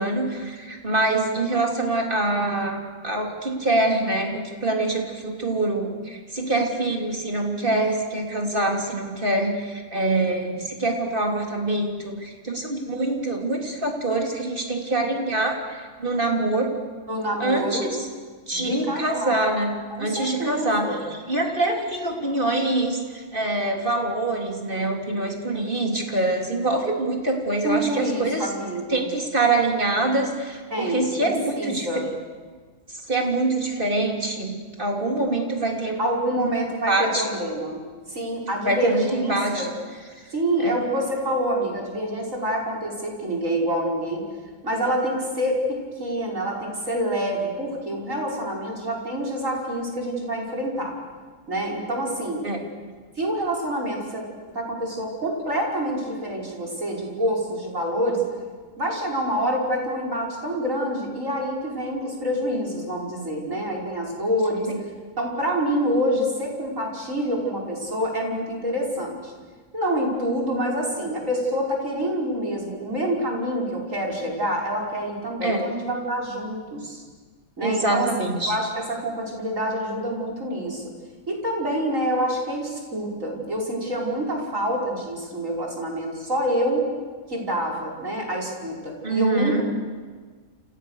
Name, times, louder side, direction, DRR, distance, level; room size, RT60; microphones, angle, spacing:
voice 1, 0.0-16.7 17.4-18.0 18.5-28.5 28.9-32.1 32.9-36.0 36.4-36.5 36.9-37.3 38.7-39.7 40.6-40.8 52.4-52.6 64.7-64.8 75.4-75.6 77.6-78.6 89.0-89.6, right 2 dB, 40° right, 1 dB, 3.8 m, -25 dB
voice 2, 17.1-17.9 18.5-19.4 19.9-21.0 27.6-29.1 30.7-32.1 36.0-37.8 38.1-39.7 40.3-44.2 44.6-50.9 51.5-52.4 53.2-54.2 54.5-58.2 58.8-64.7 65.2-69.3 69.7-77.0 77.6-78.1 78.5-80.9 81.3-86.9 87.3-89.6, equal, 75° right, -2 dB, 6.0 m, -27 dB
29.0 x 29.0 x 6.6 m, 1.5 s
omnidirectional pair, 1.4 m